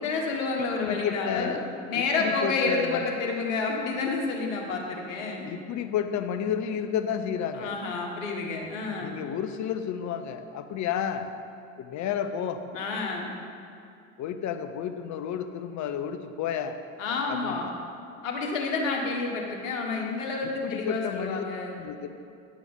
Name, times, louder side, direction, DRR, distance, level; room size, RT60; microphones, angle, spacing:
voice 1, 0.0-1.6 1.9-5.5 7.5-9.2 12.7-13.3 17.0-17.7 18.2-21.8, left 4 dB, 85° left, 0 dB, 1.5 m, -29 dB
voice 2, 0.8-1.6 1.9-3.1 5.5-7.7 9.0-11.3 11.8-12.6 14.2-16.8 17.3-17.7 20.6-21.4 21.8-22.1, left 8 dB, 45° left, 8 dB, 0.9 m, -31 dB
9.7 x 4.9 x 7.9 m, 2.5 s
hypercardioid pair, 85°, 39 cm